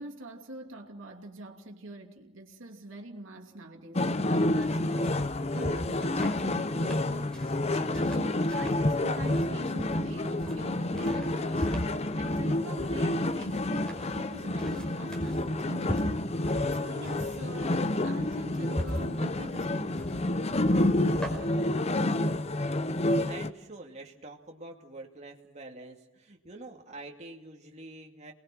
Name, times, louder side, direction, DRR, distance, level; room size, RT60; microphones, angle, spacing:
voice 1, 0.0-7.4 7.7-11.7 12.1-16.2 16.7-20.6, right 1 dB, 90° right, 2 dB, 2.7 m, -45 dB
sound 1, 4.0-23.5, left 1 dB, 35° left, 0.8 m, -29 dB
sound 2, 4.6-21.3, equal, 5° left, 4.9 m, -40 dB
voice 2, 21.8-28.3, right 2 dB, 35° right, 1 dB, 2.5 m, -47 dB
29.0 x 20.5 x 6.1 m, 0.93 s
head